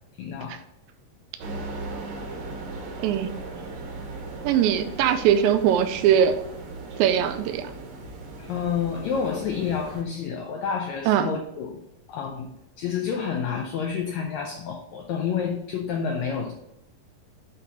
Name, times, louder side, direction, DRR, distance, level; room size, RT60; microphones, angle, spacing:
voice 1, 0.2-0.6 8.4-11.8 12.1-16.5, left 6 dB, 85° left, 3 dB, 1.6 m, -29 dB
sound 1, 1.4-10.0, right 3 dB, 70° right, 1.3 m, -38 dB
voice 2, 4.4-6.4 7.0-7.7 11.1-11.3, right 9 dB, 85° right, 9 dB, 2.3 m, -21 dB
7.9 x 2.8 x 6.0 m, 0.85 s
omnidirectional pair, 4.0 m